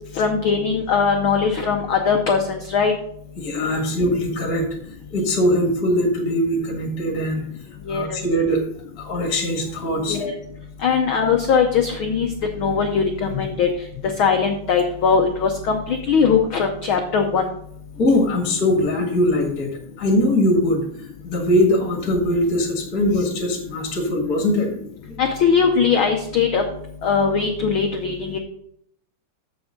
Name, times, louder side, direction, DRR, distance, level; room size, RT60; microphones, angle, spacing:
voice 1, 0.2-2.9 7.9-8.2 10.1-10.4 10.8-12.3 12.6-13.7 14.2-17.4 25.2-26.6 27.0-28.4, left 6 dB, 90° left, 4 dB, 1.1 m, -20 dB
voice 2, 3.4-4.7 5.1-7.5 7.9-8.6 9.0-10.2 13.3-13.4 18.0-19.7 20.0-20.9 21.2-24.7 25.1-25.2, left 1 dB, 35° left, 2 dB, 1.9 m, -21 dB
14.0 x 6.1 x 3.8 m, 0.70 s
omnidirectional pair, 3.5 m